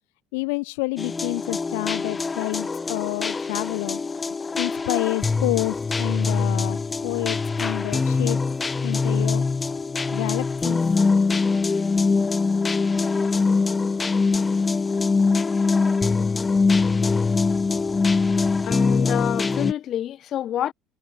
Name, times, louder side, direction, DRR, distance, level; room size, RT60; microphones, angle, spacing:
voice 1, 0.3-4.0 4.6-6.8 7.0-8.4 8.8-9.4 10.1-10.8, left 29 dB, 90° left, 0.6 m, -28 dB
sound 1, 1.0-19.7, left 4 dB, 20° left, 0.7 m, -23 dB
voice 2, 18.6-20.7, left 11 dB, 50° left, 1.6 m, -27 dB
supercardioid pair, 100°, 0 cm